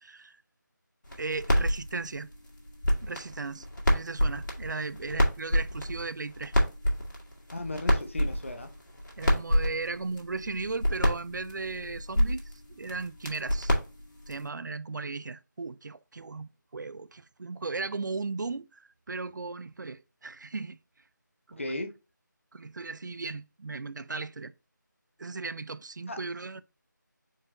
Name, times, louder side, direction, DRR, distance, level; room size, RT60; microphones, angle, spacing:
voice 1, 0.0-0.4 1.2-2.3 3.0-3.7 3.9-6.5 9.2-13.7 14.3-20.8 21.5-21.8 22.5-24.5 25.2-26.6, right 3 dB, 65° right, 0.3 m, -36 dB
sound 1, 1.0-14.5, equal, 70° left, 1.8 m, -29 dB
voice 2, 7.5-8.7 21.5-21.9 26.1-26.2, left 1 dB, 40° left, 0.6 m, -36 dB
4.5 x 2.9 x 3.6 m
figure-of-eight pair, 175°, 11 cm